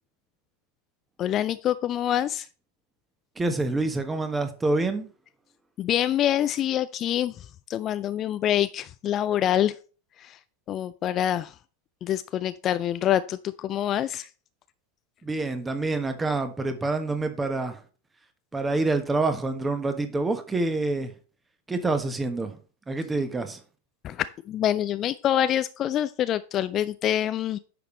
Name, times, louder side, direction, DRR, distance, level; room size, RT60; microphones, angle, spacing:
voice 1, 1.2-2.5 5.8-9.7 10.2-10.4 10.7-11.5 12.0-14.3 24.0-27.6, left 11 dB, 30° left, 0.3 m, -26 dB
voice 2, 3.4-5.1 15.2-17.8 18.5-21.1 21.7-22.6 22.9-23.6, right 2 dB, 10° right, 1.3 m, -27 dB
9.9 x 6.7 x 3.2 m
figure-of-eight pair, 90°, 0 cm